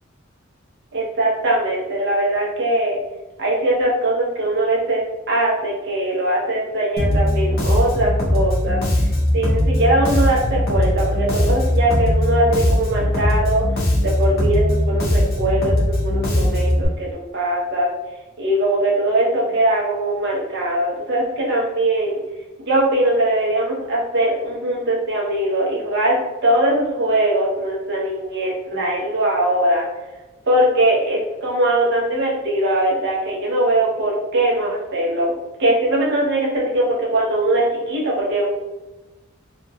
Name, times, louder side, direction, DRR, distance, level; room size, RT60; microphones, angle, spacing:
voice 1, 0.9-3.0 3.4-5.0 5.3-8.8 9.3-13.6 14.0-17.9 18.4-22.2 22.7-29.8 30.5-35.3 35.6-38.5, right 1 dB, 60° right, -4 dB, 0.8 m, -21 dB
Bass guitar, 7.0-16.9, left 1 dB, 50° left, 0.8 m, -19 dB
3.3 x 2.5 x 2.3 m, 1.1 s
head